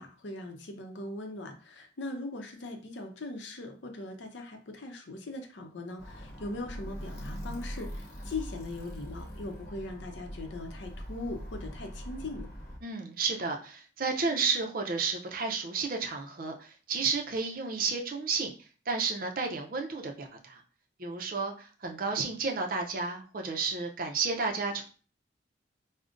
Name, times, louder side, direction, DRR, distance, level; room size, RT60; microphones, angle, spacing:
voice 1, 0.0-12.5, left 2 dB, 80° left, 4 dB, 0.6 m, -40 dB
Alarm, 6.0-12.8, equal, 55° left, 0.9 m, -42 dB
voice 2, 12.8-18.5 18.9-20.6 21.0-24.8, right 4 dB, 50° right, 2 dB, 0.5 m, -32 dB
5.0 x 2.1 x 2.5 m, 0.39 s
head